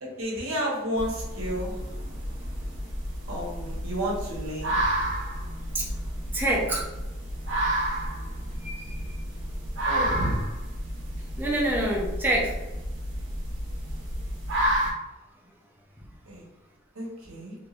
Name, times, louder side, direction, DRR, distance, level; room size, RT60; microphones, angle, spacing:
voice 1, 0.0-1.9 3.3-5.1 9.8-10.4 11.5-11.7 16.3-16.4 16.9-17.6, equal, 85° right, -3 dB, 1.1 m, -31 dB
sound 1, 1.0-14.9, right 1 dB, 60° right, 1.2 m, -31 dB
voice 2, 6.3-6.9 8.6-9.2 11.4-12.6, right 1 dB, 10° right, -4 dB, 0.6 m, -27 dB
3.4 x 3.2 x 2.5 m, 1.0 s
head